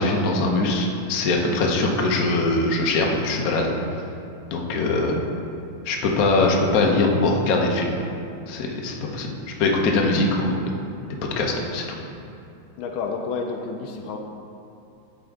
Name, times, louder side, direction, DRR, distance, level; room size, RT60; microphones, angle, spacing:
voice 1, 0.0-3.7 4.5-5.2 5.8-7.9 8.5-9.3 9.6-10.6 11.4-12.0, left 2 dB, 55° left, 0 dB, 1.1 m, -22 dB
voice 2, 12.8-14.2, left 4 dB, 80° left, 3 dB, 1.4 m, -30 dB
11.5 x 4.3 x 3.6 m, 2.7 s
omnidirectional pair, 2.3 m